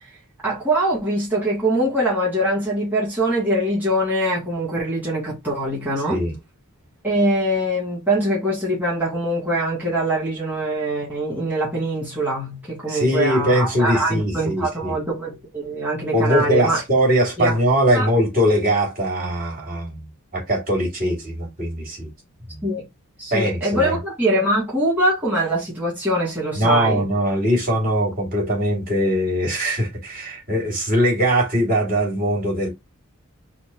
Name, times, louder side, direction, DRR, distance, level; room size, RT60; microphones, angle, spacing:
voice 1, 0.4-6.2 7.0-16.8 17.4-17.5 17.9-18.1 22.6-22.8 23.2-27.1, right 1 dB, 10° right, 1.7 m, -23 dB
voice 2, 12.9-15.0 16.1-20.0 20.3-22.1 22.5-22.6 23.3-24.0 26.5-32.7, equal, 40° right, 2.5 m, -21 dB
4.4 x 2.1 x 4.3 m
head